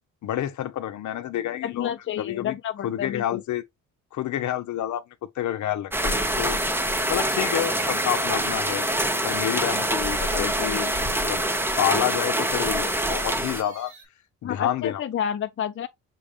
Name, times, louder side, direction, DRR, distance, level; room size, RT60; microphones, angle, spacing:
voice 1, 0.2-1.9 2.2-2.6 2.8-3.6 4.1-5.0 5.4-6.6 7.1-8.9 9.2-11.5 11.8-13.9 14.4-15.0, left 11 dB, 70° left, 0.8 m, -28 dB
voice 2, 1.6-3.4 10.3-10.9 14.4-15.9, left 9 dB, 40° left, 0.6 m, -30 dB
sound 1, 5.9-13.6, right 1 dB, 5° right, 0.8 m, -25 dB
sound 2, 6.4-14.1, right 5 dB, 75° right, 2.1 m, -50 dB
6.2 x 2.4 x 3.3 m
cardioid pair, 90°, 30 cm